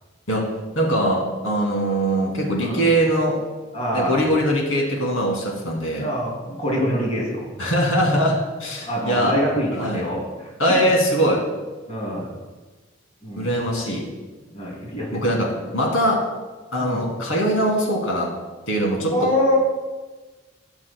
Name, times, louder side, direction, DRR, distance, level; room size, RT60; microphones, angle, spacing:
voice 1, 0.8-3.4 3.9-6.1 7.6-9.3 9.8-10.0 10.6-11.4 13.4-14.0 15.1-15.5 15.7-16.2 16.7-18.3 18.7-19.1, equal, 85° left, -1 dB, 2.3 m, -21 dB
voice 2, 3.7-4.2 5.9-7.5 8.8-10.5 10.8-10.9 11.9-12.3 13.2-13.5 14.5-15.3 16.8-17.0 19.1-19.6, equal, 30° left, -3 dB, 2.6 m, -25 dB
16.5 x 6.1 x 2.2 m, 1.3 s
head